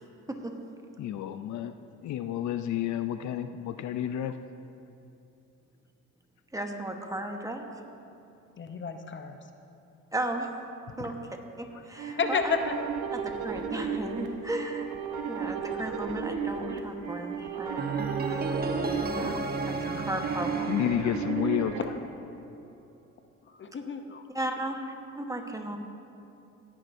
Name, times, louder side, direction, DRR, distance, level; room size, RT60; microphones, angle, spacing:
voice 1, 1.0-4.4 11.7-11.8 19.3-19.4 19.7-20.1 20.6-21.8, left 11 dB, 70° left, 10 dB, 0.5 m, -31 dB
voice 2, 6.5-7.7 10.1-10.5 11.0-11.2 11.6-12.6 13.1-14.9 15.3-17.9 18.3-18.5 19.0-19.3 19.7-20.5 24.3-25.8, right 1 dB, 10° right, 3 dB, 1.1 m, -35 dB
voice 3, 8.6-9.4 11.0-11.1 12.2-12.7 18.9-19.0 21.2-21.3 23.5-24.2, left 5 dB, 40° left, 6 dB, 0.8 m, -31 dB
sound 1, 12.0-21.8, right 6 dB, 75° right, 1.1 m, -34 dB
sound 2, 17.8-21.8, right 3 dB, 30° right, 0.9 m, -33 dB
17.5 x 10.5 x 2.6 m, 2.7 s
cardioid pair, 90°, 30 cm